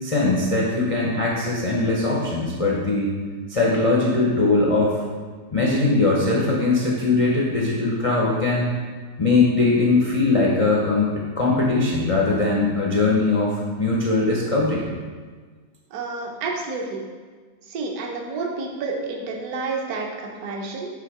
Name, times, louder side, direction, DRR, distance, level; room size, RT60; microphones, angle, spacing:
voice 1, 0.0-3.1 3.5-5.0 5.5-8.7 9.2-14.8, left 3 dB, 60° left, -4 dB, 0.3 m, -20 dB
voice 2, 15.9-17.0 17.7-20.9, right 3 dB, 60° right, 1 dB, 1.2 m, -29 dB
7.2 x 3.4 x 4.8 m, 1.5 s
omnidirectional pair, 2.0 m